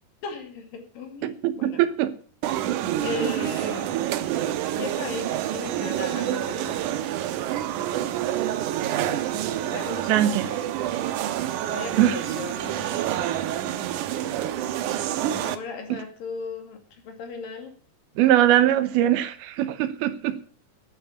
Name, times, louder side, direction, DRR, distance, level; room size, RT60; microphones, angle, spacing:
voice 1, 0.2-1.8 3.0-4.1 4.8-7.1 9.6-10.6 11.6-13.2 15.3-17.8, left 4 dB, 65° left, 3.8 m, -37 dB
voice 2, 1.2-2.1 10.1-10.5 12.0-12.3 18.2-20.4, right 12 dB, 90° right, 3.0 m, -21 dB
sound 1, 2.4-15.6, right 12 dB, 75° right, 2.0 m, -28 dB
12.5 x 8.3 x 7.1 m
omnidirectional pair, 4.4 m